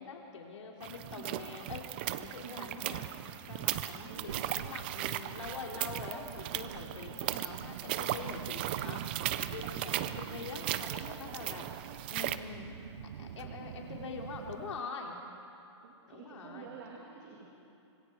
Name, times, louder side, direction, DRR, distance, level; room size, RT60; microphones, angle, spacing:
voice 1, 0.0-1.8 2.2-3.0 3.5-9.1 9.3-11.6 12.1-12.8 13.2-15.2 16.0-16.7, left 5 dB, 85° left, 0 dB, 3.1 m, -44 dB
sound 1, 0.8-12.4, right 13 dB, 20° right, 0.4 m, -37 dB
voice 2, 2.4-2.9 4.1-4.3 10.1-10.3 10.9-11.4 13.3-13.4 15.8-17.5, right 7 dB, 40° right, -3 dB, 2.7 m, -49 dB
Child speech kid speaking, 4.0-14.8, right 10 dB, 75° right, 0.5 m, -46 dB
26.0 x 22.5 x 4.6 m, 2.7 s
hypercardioid pair, 175°, 15 cm